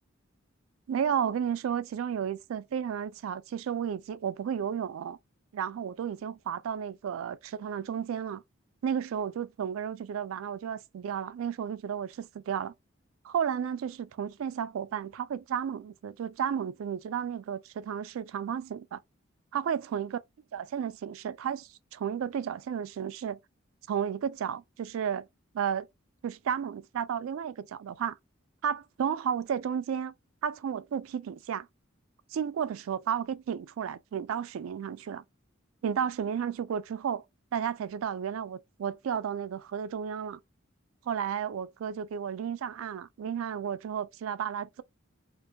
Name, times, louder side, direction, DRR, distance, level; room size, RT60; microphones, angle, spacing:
voice 1, 0.9-5.2 5.5-8.4 8.8-12.7 13.2-19.0 19.5-20.1 20.5-23.4 23.9-25.3 25.5-25.9 26.2-28.2 28.6-30.1 30.4-31.7 32.3-35.2 35.8-37.2 37.5-40.4 41.1-44.8, right 8 dB, 90° right, 0.3 m, -33 dB
2.5 x 2.2 x 2.7 m
head